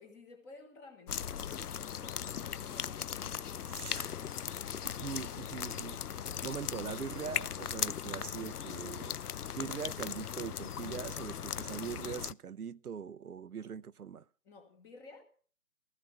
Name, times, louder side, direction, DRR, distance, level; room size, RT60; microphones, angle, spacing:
voice 1, 0.0-3.5 3.8-4.5 5.1-5.4 14.4-15.2, left 3 dB, 5° left, 1.1 m, -55 dB
sound 1, 1.1-12.3, left 8 dB, 85° left, 0.7 m, -38 dB
voice 2, 3.7-4.0 4.8-6.0 6.4-9.2 9.5-14.2, right 7 dB, 75° right, 0.9 m, -41 dB
15.5 x 15.0 x 5.6 m
hypercardioid pair, 160°, 45 cm